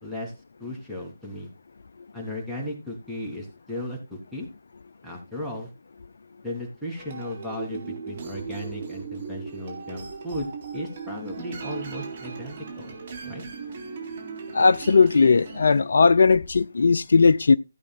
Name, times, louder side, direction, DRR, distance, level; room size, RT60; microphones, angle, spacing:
voice 1, 0.0-0.3 0.6-1.5 2.1-4.5 5.0-5.7 6.4-13.0 13.2-13.4, left 1 dB, ahead, 3.1 m, -35 dB
sound 1, 7.0-15.8, right 5 dB, 40° right, 3.5 m, -38 dB
voice 2, 14.5-17.6, left 4 dB, 60° left, 0.4 m, -18 dB
16.0 x 8.5 x 2.3 m
figure-of-eight pair, 150°, 0 cm